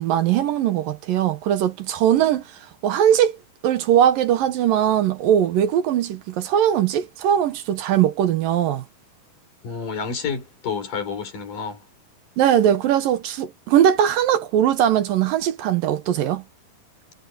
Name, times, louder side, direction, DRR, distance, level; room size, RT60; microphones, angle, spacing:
voice 1, 0.0-2.4 2.8-3.4 3.6-8.8 12.4-16.4, right 10 dB, 75° right, 2.8 m, -20 dB
voice 2, 9.6-11.8, left 5 dB, 60° left, 6.0 m, -29 dB
omnidirectional pair, 4.2 m